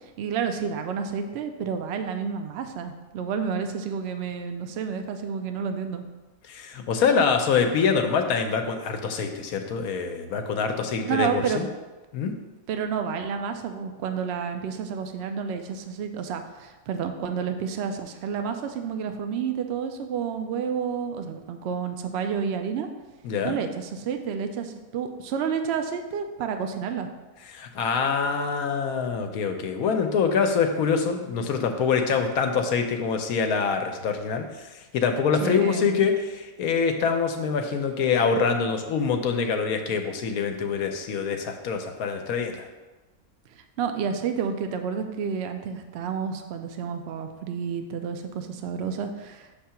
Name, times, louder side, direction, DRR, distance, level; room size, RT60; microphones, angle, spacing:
voice 1, 0.2-6.0 11.0-11.6 12.7-22.9 23.4-27.1 35.4-36.0 43.8-49.5, right 6 dB, 60° right, 6 dB, 0.7 m, -30 dB
voice 2, 6.5-11.6 12.1-12.3 23.2-23.6 27.5-42.7, left 5 dB, 80° left, 5 dB, 1.1 m, -25 dB
6.7 x 2.8 x 5.7 m, 1.2 s
omnidirectional pair, 1.5 m